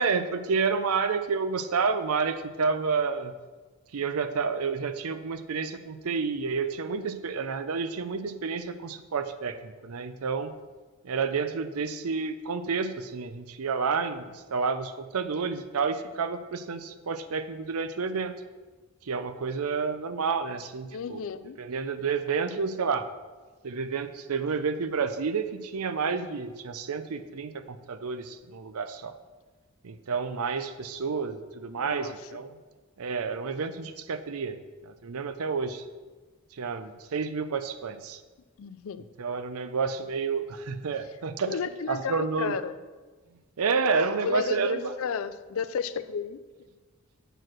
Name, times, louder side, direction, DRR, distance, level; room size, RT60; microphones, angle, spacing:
voice 1, 0.0-3.3 3.9-10.5 11.0-18.3 19.0-21.2 21.6-23.1 23.6-29.1 29.8-32.6 33.0-34.6 34.9-35.8 36.5-38.2 39.2-41.6 41.9-42.6 43.6-44.9, right 5 dB, 80° right, 11 dB, 0.6 m, -30 dB
voice 2, 20.9-21.6 31.8-32.1 38.6-39.0 41.5-42.8 44.2-46.4, left 6 dB, 70° left, 14 dB, 0.4 m, -33 dB
7.9 x 4.5 x 6.2 m, 1.3 s
head